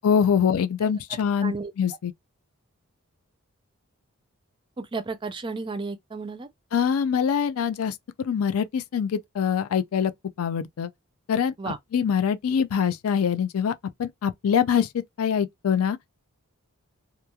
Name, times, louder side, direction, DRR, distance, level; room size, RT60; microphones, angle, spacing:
voice 1, 0.0-2.1 6.7-10.1 10.4-10.9 11.3-13.7 14.0-16.0, left 7 dB, 75° left, 0.4 m, -24 dB
voice 2, 1.4-1.7 4.8-6.5 11.6-11.8, right 4 dB, 20° right, 0.4 m, -32 dB
3.0 x 2.3 x 2.2 m
head